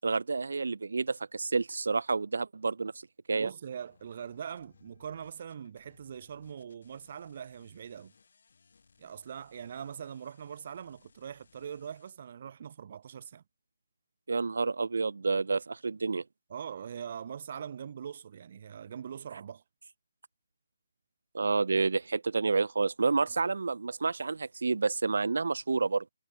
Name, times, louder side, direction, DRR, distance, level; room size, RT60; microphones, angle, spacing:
voice 1, 0.0-2.9 3.3-3.5 14.3-16.2 21.3-26.0, right 4 dB, 85° right, 0.6 m, -29 dB
voice 2, 3.3-8.1 9.0-13.4 16.5-19.6, right 8 dB, 40° right, 0.8 m, -42 dB
sound 1, 3.9-12.1, left 5 dB, 60° left, 5.2 m, -65 dB
hypercardioid pair, 175°, 0 cm